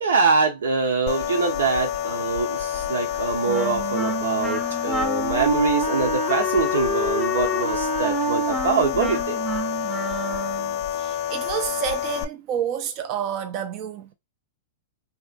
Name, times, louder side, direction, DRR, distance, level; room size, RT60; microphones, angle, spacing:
voice 1, 0.0-9.4, right 4 dB, 85° right, 1.0 m, -24 dB
sound 1, 1.1-12.2, left 10 dB, 50° left, 0.4 m, -28 dB
Wind instrument woodwind instrument, 3.5-10.8, right 1 dB, 5° right, 0.7 m, -28 dB
voice 2, 10.9-14.1, right 9 dB, 40° right, 0.4 m, -29 dB
2.8 x 2.6 x 2.5 m
hypercardioid pair, 130°, 0 cm